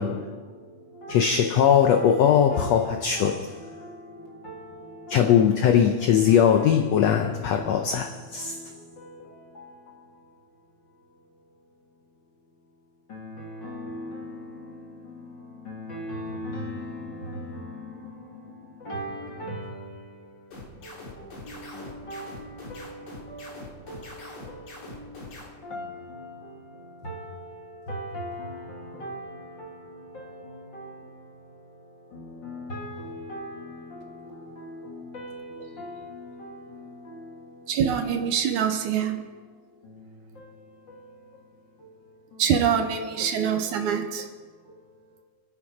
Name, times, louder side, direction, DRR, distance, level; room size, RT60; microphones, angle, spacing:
voice 1, 0.0-2.3 2.5-5.4 6.0-7.0 7.5-10.3 13.1-37.8 39.8-41.5 41.8-42.4 43.2-43.6 44.2-44.3 44.7-45.2, equal, 40° left, 1.9 m, -41 dB
voice 2, 1.1-3.6 5.1-8.6, left 8 dB, 80° left, 1.5 m, -20 dB
sound 1, 20.5-25.5, left 2 dB, 60° left, 4.5 m, -42 dB
voice 3, 37.7-39.2 42.4-44.3, right 8 dB, 75° right, 2.3 m, -24 dB
25.0 x 8.7 x 4.9 m
omnidirectional pair, 3.8 m